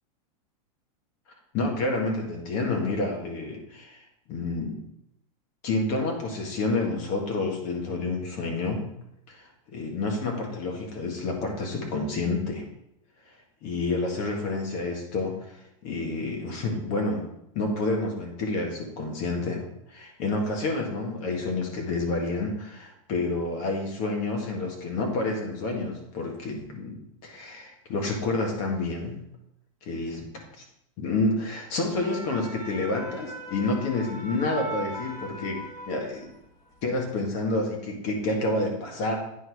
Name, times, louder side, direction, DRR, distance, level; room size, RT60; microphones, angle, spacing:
voice 1, 1.5-4.8 5.6-8.9 9.3-12.6 13.6-15.6 15.8-17.3 17.6-19.6 19.9-29.2 29.8-30.3 30.6-30.7 31.0-36.3 36.8-39.1, left 2 dB, 40° left, 1 dB, 1.7 m, -29 dB
sound 1, 31.7-36.5 36.8-37.1, right 1 dB, 20° left, 1.2 m, -39 dB
9.1 x 4.1 x 4.8 m, 0.80 s
supercardioid pair, 165°, 18 cm